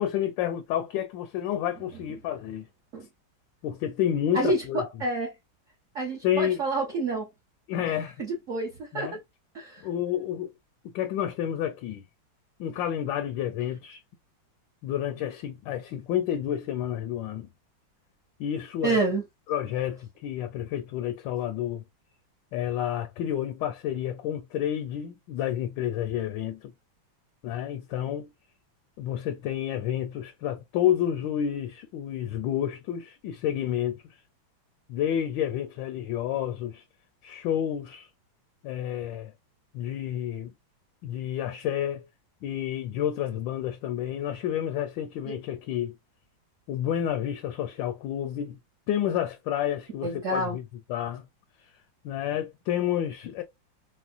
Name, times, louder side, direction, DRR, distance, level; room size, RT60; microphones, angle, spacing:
voice 1, 0.0-2.7 3.6-4.8 6.2-6.6 7.7-8.2 8.9-9.1 9.8-10.5 10.9-12.0 12.6-14.0 14.8-17.5 18.4-19.0 19.5-21.8 22.5-26.7 27.4-28.3 29.0-34.0 34.9-36.8 37.2-38.1 38.6-39.3 39.7-40.5 41.0-42.0 42.4-45.9 46.7-48.6 48.9-50.6 50.9-51.3 52.0-53.4, left 10 dB, 75° left, 1.2 m, -30 dB
voice 2, 4.3-5.3 5.9-7.3 8.2-9.2 9.5-9.9 18.8-19.2 45.2-45.3 50.0-50.6, right 2 dB, 50° right, 1.0 m, -28 dB
4.4 x 2.1 x 2.4 m
omnidirectional pair, 2.2 m